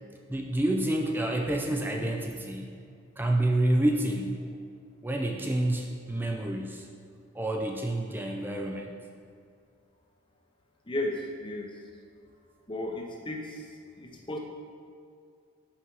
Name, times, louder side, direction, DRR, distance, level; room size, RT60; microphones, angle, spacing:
voice 1, 0.3-2.8 3.2-4.4 5.0-6.9 7.3-8.9, right 1 dB, 10° right, 2 dB, 0.4 m, -28 dB
voice 2, 10.9-11.7 12.7-13.6 14.0-14.4, left 1 dB, 20° left, 1 dB, 0.7 m, -34 dB
5.7 x 5.7 x 4.7 m, 2.3 s
head